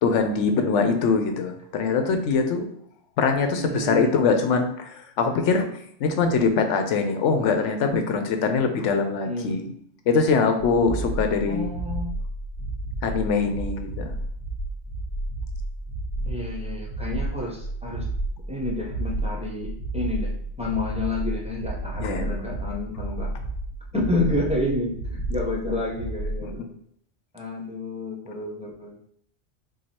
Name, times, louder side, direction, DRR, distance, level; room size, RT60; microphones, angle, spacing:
voice 1, 0.0-2.6 3.2-5.7 6.0-9.7 10.1-11.7 13.0-14.1 22.0-22.2 26.4-26.7, left 4 dB, 90° left, 6 dB, 1.0 m, -23 dB
voice 2, 3.5-4.2 9.2-9.6 11.5-12.1 16.2-18.0 18.5-23.3 23.9-26.6 27.3-29.0, left 2 dB, 5° right, -2 dB, 0.7 m, -30 dB
sound 1, 10.6-26.4, right 2 dB, 60° left, 1.5 m, -31 dB
4.7 x 2.4 x 4.2 m, 0.66 s
omnidirectional pair, 1.2 m